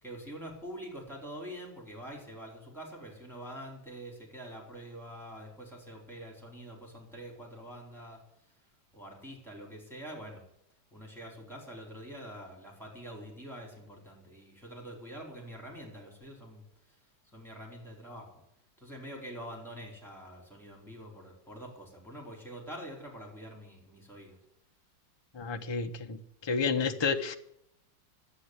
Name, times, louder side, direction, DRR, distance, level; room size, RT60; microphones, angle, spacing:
voice 1, 0.0-8.6 8.9-10.4 10.9-17.0 17.3-18.4 18.8-24.4, equal, ahead, 0 dB, 4.3 m, -45 dB
voice 2, 25.3-27.3, left 5 dB, 30° left, 5 dB, 0.5 m, -31 dB
12.0 x 8.5 x 9.7 m, 0.76 s
omnidirectional pair, 2.1 m